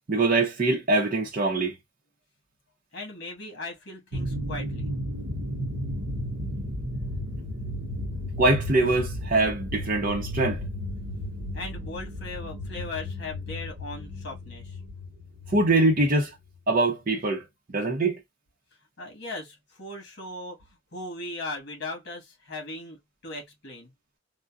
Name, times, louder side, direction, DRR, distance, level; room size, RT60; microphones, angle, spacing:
voice 1, 0.1-1.7 8.4-10.6 15.5-16.3 16.7-17.4 17.7-18.2, right 2 dB, 45° right, 0.6 m, -23 dB
voice 2, 2.9-4.9 11.5-14.8 19.0-20.6 20.9-23.9, left 2 dB, 60° left, 1.4 m, -38 dB
sound 1, 4.1-16.1, left 1 dB, 85° right, 0.8 m, -34 dB
3.6 x 2.1 x 2.3 m
head